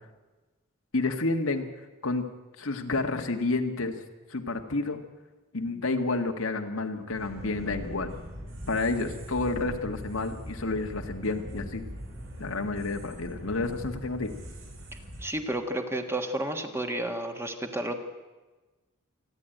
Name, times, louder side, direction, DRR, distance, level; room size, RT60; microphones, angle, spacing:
voice 1, 0.9-1.7 2.0-2.2 2.6-3.9 4.3-5.0 5.5-8.2 8.7-11.8 12.4-14.3, left 3 dB, 80° left, 5 dB, 1.7 m, -30 dB
sound 1, 7.1-15.2, equal, 70° right, 6.4 m, -41 dB
voice 2, 15.2-17.9, right 1 dB, 10° right, 5 dB, 1.5 m, -31 dB
27.5 x 10.5 x 9.1 m, 1.2 s
head